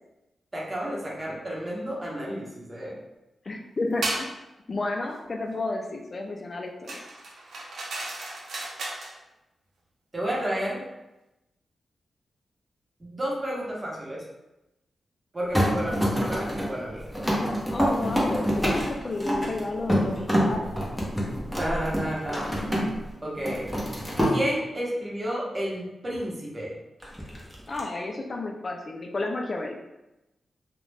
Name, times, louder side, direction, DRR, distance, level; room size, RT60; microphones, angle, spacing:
voice 1, 0.5-3.0 10.1-10.8 13.0-14.2 15.3-17.1 21.6-22.4 23.2-23.7 24.2-26.7, equal, 30° right, -4 dB, 0.9 m, -31 dB
voice 2, 3.5-4.4 4.7-7.0 17.7-20.7 27.7-29.8, left 2 dB, 45° left, 2 dB, 0.3 m, -32 dB
sound 1, 4.0-4.3 6.9-9.1, right 2 dB, 80° right, 0.5 m, -34 dB
sound 2, 15.5-23.1 23.4-24.4 27.0-27.8, equal, ahead, 0.8 m, -27 dB
2.4 x 2.1 x 3.2 m, 0.96 s
cardioid pair, 60°, 0 cm